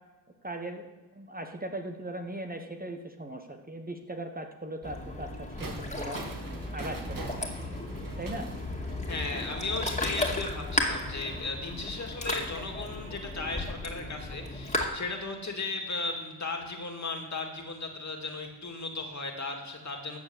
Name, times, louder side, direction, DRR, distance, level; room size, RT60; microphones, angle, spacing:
voice 1, 0.4-6.2 6.7-7.3 8.2-8.5, right 1 dB, 20° right, 4 dB, 1.2 m, -39 dB
Ocean, 4.8-14.9, left 2 dB, 15° left, 2.4 m, -34 dB
sound 1, 5.6-10.4, right 2 dB, 55° right, 2.1 m, -44 dB
voice 2, 9.1-20.2, left 3 dB, 45° left, 3 dB, 2.5 m, -36 dB
13.5 x 4.6 x 8.2 m, 1.3 s
cardioid pair, 55°, 40 cm